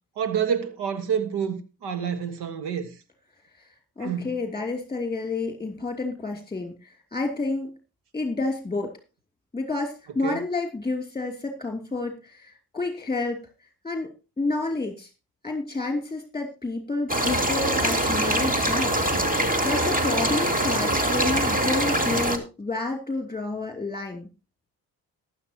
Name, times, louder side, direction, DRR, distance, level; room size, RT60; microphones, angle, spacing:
voice 1, 0.2-2.9 4.0-4.3 10.2-10.4, right 7 dB, 75° right, 1.6 m, -28 dB
voice 2, 4.0-7.8 8.1-8.9 9.5-13.4 13.8-15.1 15.4-19.0 19.6-24.3, left 3 dB, 10° left, 2.8 m, -30 dB
sound 1, 17.1-22.4, right 1 dB, 20° right, 2.3 m, -23 dB
15.0 x 11.0 x 2.9 m
supercardioid pair, 60°, 40 cm